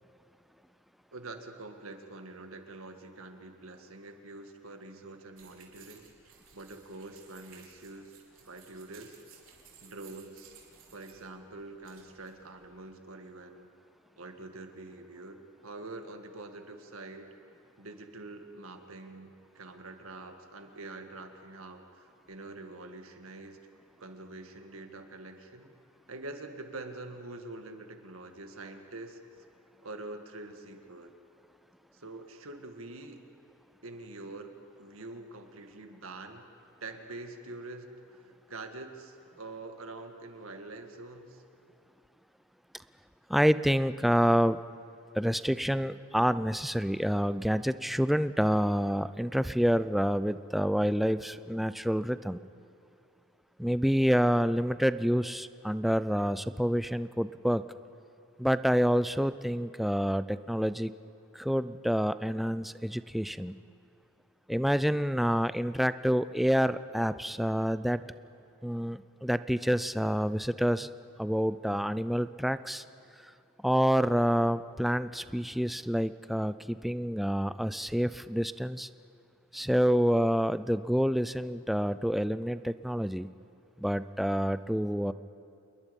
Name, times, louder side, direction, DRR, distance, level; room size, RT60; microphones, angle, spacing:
voice 1, 1.1-6.1 6.5-8.2 8.5-9.4 9.8-10.6 10.9-13.7 14.2-17.3 17.8-23.6 24.0-25.7 26.1-29.2 29.8-31.1 31.9-33.2 33.8-36.5 36.8-41.4, right 2 dB, 90° right, 6 dB, 1.9 m, -45 dB
sound 1, 5.4-12.9, right 7 dB, 70° right, 3.8 m, -58 dB
voice 2, 43.3-44.6 45.2-52.4 53.6-57.6 58.4-60.9 61.3-63.6 64.5-68.0 68.6-70.9 71.2-72.8 73.6-78.9 79.5-83.3 83.8-85.1, equal, ahead, 14 dB, 0.4 m, -28 dB
28.0 x 21.5 x 5.4 m, 2.7 s
head